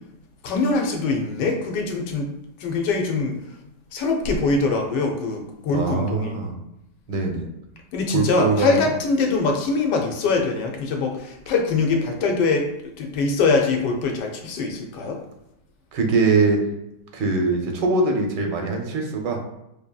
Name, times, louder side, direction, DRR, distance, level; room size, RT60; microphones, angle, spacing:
voice 1, 0.4-2.3 2.6-3.4 3.9-6.3 7.9-12.7 13.0-15.2, left 3 dB, 80° left, 2 dB, 1.2 m, -23 dB
voice 2, 5.7-6.6 7.1-7.5 8.1-8.8 15.9-16.6 17.1-19.5, right 3 dB, 85° right, 2 dB, 1.4 m, -22 dB
4.8 x 2.7 x 2.3 m, 0.85 s
omnidirectional pair, 1.8 m